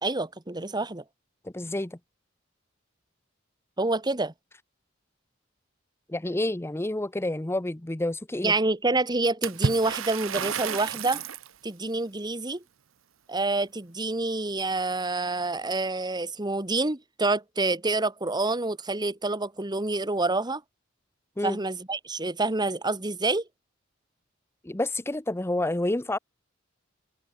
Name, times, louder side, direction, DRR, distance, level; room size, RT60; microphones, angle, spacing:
voice 1, 0.0-1.0 3.8-4.3 8.4-11.2 11.6-12.6 13.3-20.6 21.4-23.4, right 2 dB, 20° right, 1.7 m, -27 dB
voice 2, 1.4-2.0 6.1-8.5 21.4-21.6 24.6-26.2, left 1 dB, 15° left, 0.7 m, -29 dB
Water / Splash splatter, 9.4-11.5, right 6 dB, 85° right, 0.8 m, -30 dB
head